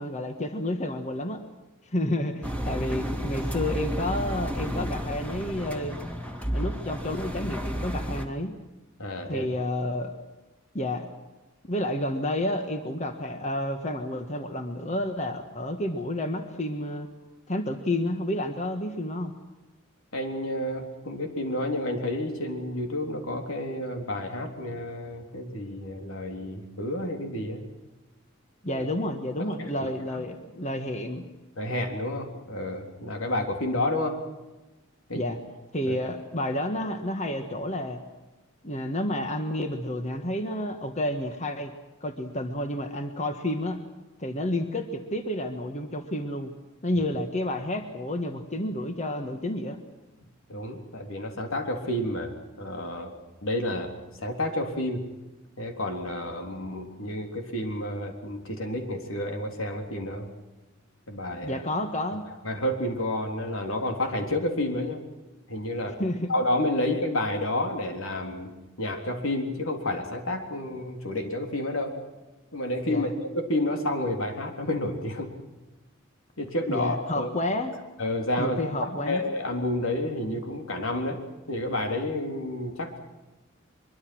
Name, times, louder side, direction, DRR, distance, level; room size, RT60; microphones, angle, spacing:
voice 1, 0.0-1.4 1.9-6.0 6.5-8.5 9.3-10.1 10.7-11.1 11.7-17.1 17.5-19.3 28.6-31.3 35.1-35.4 35.7-38.0 38.6-41.7 42.0-43.8 44.2-46.5 46.8-49.8 61.4-62.2 66.0-66.3 72.9-73.0 76.7-77.7 78.4-79.3, left 1 dB, 35° left, 6 dB, 1.6 m, -30 dB
Engine, 2.4-8.3, equal, 5° left, 2.2 m, -32 dB
voice 2, 9.0-9.5 20.1-27.6 28.6-28.9 29.6-30.3 31.6-34.2 35.1-35.3 35.8-35.9 50.5-53.1 53.4-55.1 55.6-60.3 61.1-61.6 62.4-65.0 65.5-66.0 66.3-68.5 68.8-72.0 72.5-75.3 76.4-77.3 78.0-81.2 81.5-83.0, left 1 dB, 85° left, 4 dB, 3.7 m, -30 dB
23.5 x 23.5 x 6.3 m, 1.1 s
head